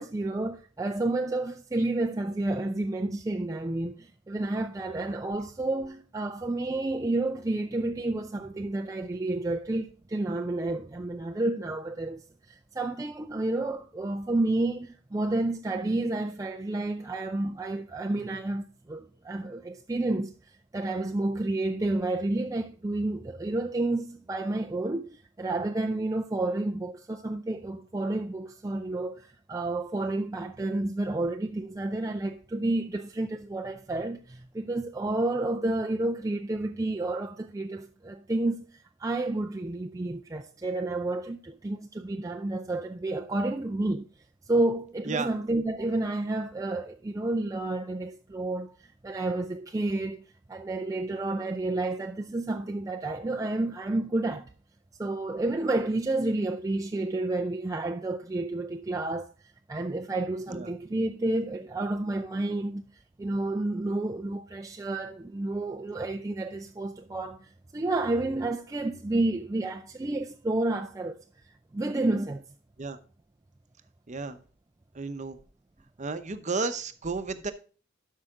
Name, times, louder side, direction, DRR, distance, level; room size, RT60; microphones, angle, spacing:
voice 1, 0.0-20.3 20.7-44.1 44.5-50.2 50.5-54.5 55.0-59.3 59.7-62.9 63.2-71.2 71.7-72.4, right 2 dB, 15° right, 0.4 m, -30 dB
voice 2, 74.1-74.4 74.9-75.4 76.0-77.5, right 4 dB, 35° right, 0.8 m, -32 dB
12.5 x 5.6 x 3.7 m
head